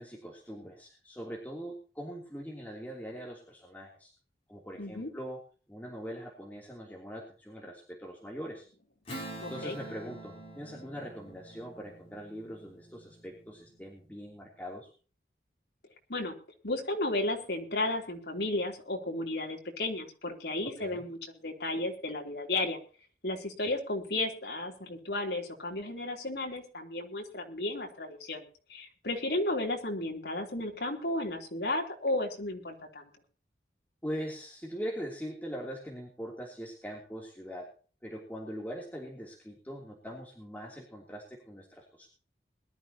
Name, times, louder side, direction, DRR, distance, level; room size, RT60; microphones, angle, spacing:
voice 1, 0.0-4.1 4.5-5.4 5.7-8.7 9.5-14.9 20.6-21.0 23.6-23.7 34.0-37.7 38.0-42.1, equal, 10° left, -2 dB, 3.1 m, -42 dB
voice 2, 4.8-5.1 9.4-9.8 16.1-16.3 16.6-22.8 23.2-33.1, left 2 dB, 70° left, 2 dB, 3.4 m, -33 dB
Strum, 9.1-14.0, right 1 dB, 35° left, 6.6 m, -46 dB
21.5 x 12.5 x 2.9 m, 0.39 s
head